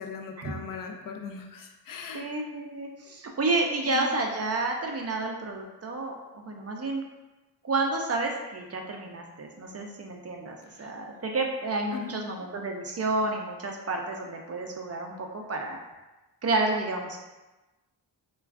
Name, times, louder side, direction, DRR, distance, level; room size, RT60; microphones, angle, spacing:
voice 1, 0.0-2.3 3.1-3.2 3.8-4.1 10.6-10.9 11.9-12.2, left 4 dB, 50° left, 4 dB, 0.5 m, -39 dB
voice 2, 2.1-7.0 7.6-15.8 16.4-17.2, right 2 dB, 35° right, 1 dB, 0.5 m, -30 dB
2.3 x 2.3 x 3.4 m, 1.1 s
supercardioid pair, 45°, 45 cm